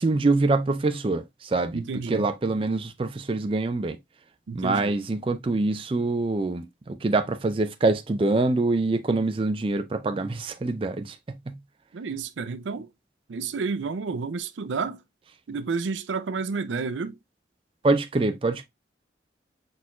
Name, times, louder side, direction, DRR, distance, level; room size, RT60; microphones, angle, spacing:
voice 1, 0.0-4.0 4.5-11.2 17.8-18.6, right 3 dB, 30° right, 0.4 m, -25 dB
voice 2, 1.7-2.3 4.5-4.9 11.9-12.9 13.3-15.0 15.5-17.2, right 4 dB, 85° right, 0.5 m, -30 dB
4.3 x 4.3 x 2.3 m
head